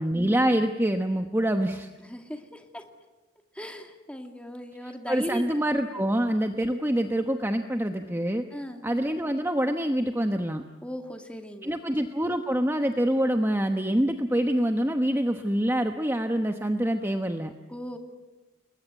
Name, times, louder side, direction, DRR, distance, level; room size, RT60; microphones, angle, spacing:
voice 1, 0.0-1.9 5.1-8.5 8.8-10.6 11.6-17.5, right 1 dB, 10° right, 6 dB, 1.0 m, -26 dB
voice 2, 2.0-2.9 3.5-5.4 8.5-8.8 10.8-11.8 17.7-18.0, equal, 5° left, 5 dB, 2.3 m, -37 dB
29.5 x 21.5 x 9.3 m, 1.2 s
head